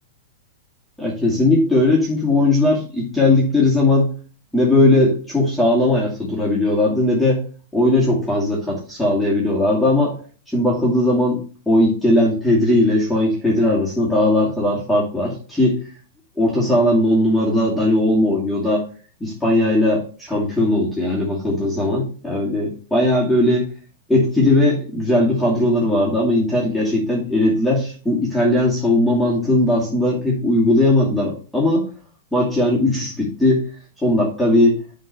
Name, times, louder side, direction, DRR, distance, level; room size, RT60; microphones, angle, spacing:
voice 1, 1.0-4.1 4.5-7.4 7.7-10.2 10.5-11.4 11.7-15.8 16.4-18.8 19.2-23.7 24.1-31.9 32.3-33.7 34.0-34.8, left 1 dB, 5° left, -5 dB, 2.6 m, -18 dB
7.7 x 4.0 x 6.8 m, 0.39 s
hypercardioid pair, 135°, 0 cm